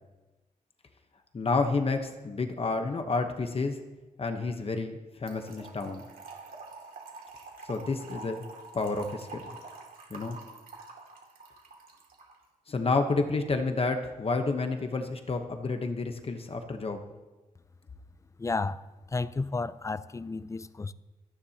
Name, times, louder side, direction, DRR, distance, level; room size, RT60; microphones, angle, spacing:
voice 1, 1.3-3.8 4.2-6.1 7.6-8.4 8.7-9.6 10.1-10.4 12.7-17.0, left 3 dB, 40° left, 1.0 m, -30 dB
Trickle dribble / Fill (with liquid), 5.3-12.4, right 3 dB, 80° right, 2.4 m, -46 dB
voice 2, 18.4-20.9, left 3 dB, 20° left, 0.4 m, -32 dB
27.0 x 10.0 x 2.9 m
wide cardioid pair, 140°, 15 cm